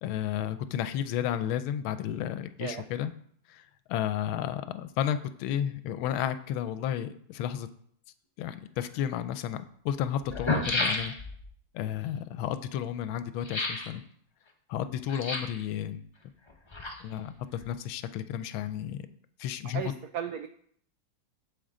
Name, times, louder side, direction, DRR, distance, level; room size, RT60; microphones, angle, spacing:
voice 1, 0.0-3.1 3.5-3.6 3.9-7.7 8.4-11.1 11.7-14.0 14.7-16.0 17.0-19.1 19.4-19.9, left 10 dB, 85° left, 12 dB, 1.4 m, -32 dB
sound 1, 8.9-9.0 9.9-10.0 10.2-11.5 13.4-13.9 15.1-15.6 16.5-17.3 17.6-17.7, left 3 dB, 45° left, 0.3 m, -31 dB
voice 2, 19.7-20.5, right 9 dB, 90° right, 9 dB, 0.8 m, -35 dB
8.8 x 7.6 x 3.8 m, 0.63 s
omnidirectional pair, 2.2 m